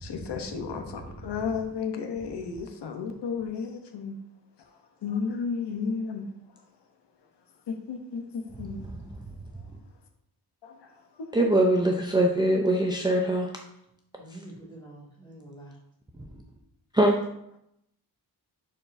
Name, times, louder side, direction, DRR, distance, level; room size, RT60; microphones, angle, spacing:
voice 1, 0.0-4.1 5.0-6.2 7.7-8.9 10.6-10.7 11.2-11.3, left 5 dB, 85° left, 5 dB, 0.9 m, -33 dB
voice 2, 11.3-13.5 16.9-17.2, right 1 dB, 10° right, 1 dB, 0.5 m, -22 dB
voice 3, 14.2-15.8, right 1 dB, 10° left, -6 dB, 2.0 m, -46 dB
9.9 x 4.5 x 2.6 m, 0.77 s
wide cardioid pair, 155°, 40 cm